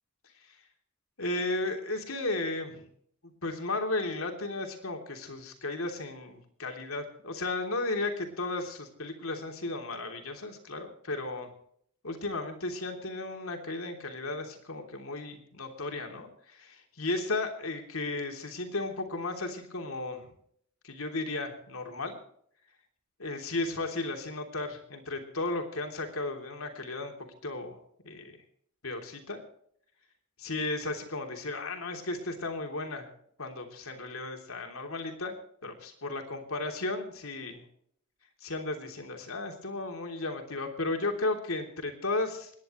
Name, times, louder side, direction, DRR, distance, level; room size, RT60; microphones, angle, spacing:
voice 1, 1.2-2.9 3.4-11.5 12.0-20.3 20.8-22.2 23.2-27.1 27.4-27.8 28.0-28.4 28.8-29.4 30.4-33.1 33.4-35.3 35.6-37.6 38.4-42.5, left 2 dB, 70° left, 4 dB, 3.2 m, -34 dB
28.5 x 10.5 x 3.2 m, 0.64 s
head